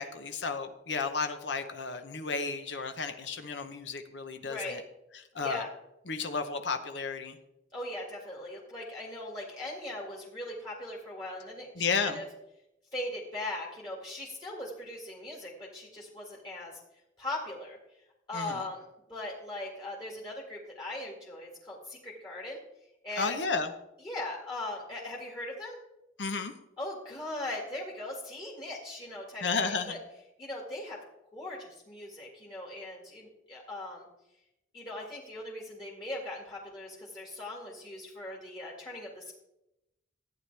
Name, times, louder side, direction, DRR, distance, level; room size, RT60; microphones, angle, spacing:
voice 1, 0.0-4.8 5.1-5.7 6.1-7.4 11.8-12.2 18.3-18.6 23.2-23.7 26.2-26.5 29.4-30.0, left 4 dB, 75° left, 7 dB, 0.9 m, -33 dB
voice 2, 4.4-4.8 5.4-5.7 7.7-11.7 12.0-12.2 12.9-16.8 17.2-17.8 18.3-18.8 19.1-22.6 23.0-23.4 24.0-25.8 26.8-30.0 30.4-31.0 31.3-34.1 34.7-39.3, left 1 dB, 25° left, -4 dB, 2.0 m, -39 dB
14.5 x 9.3 x 3.4 m, 0.89 s
head